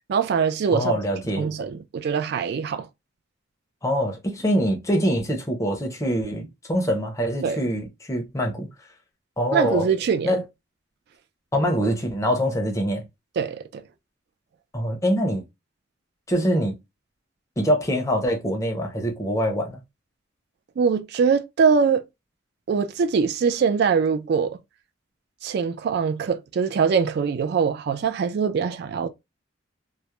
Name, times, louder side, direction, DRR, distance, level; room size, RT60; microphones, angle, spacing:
voice 1, 0.1-0.9 1.4-2.9 7.4-7.6 9.5-10.4 13.4-13.8 20.8-22.0 22.7-24.6 25.4-29.1, right 6 dB, 55° right, 0.3 m, -23 dB
voice 2, 0.7-1.5 3.8-8.7 9.4-9.9 10.2-10.4 11.5-13.0 14.7-15.4 16.3-16.8 17.6-19.8, equal, 15° left, 0.5 m, -24 dB
2.3 x 2.0 x 2.9 m
head